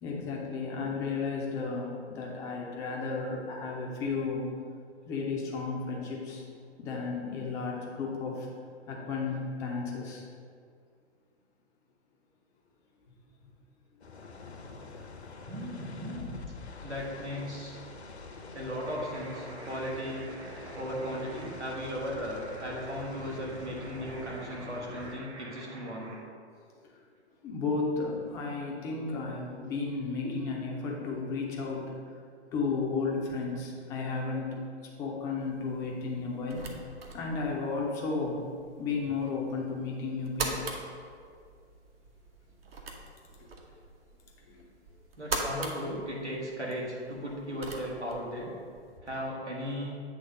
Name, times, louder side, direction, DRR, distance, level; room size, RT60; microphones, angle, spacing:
voice 1, 0.0-4.5 5.1-6.5 6.8-8.5 8.9-10.2 14.0-14.1 27.4-32.0 32.5-34.6 35.0-36.7 37.1-38.4 38.8-40.7 43.4-43.5 44.4-44.6, left 4 dB, 10° left, -2 dB, 0.4 m, -33 dB
sound 1, 14.0-25.1, left 3 dB, 70° left, 0.8 m, -46 dB
voice 2, 15.5-16.3 16.8-17.8 18.5-20.3 20.7-26.1 45.2-48.5 49.0-50.0, equal, 90° right, -4 dB, 1.8 m, -36 dB
sound 2, 18.8-26.2, right 2 dB, 30° right, 1.0 m, -48 dB
sound 3, 35.4-49.0, right 3 dB, 60° right, 1.0 m, -42 dB
8.5 x 3.5 x 5.1 m, 2.2 s
figure-of-eight pair, 120°, 33 cm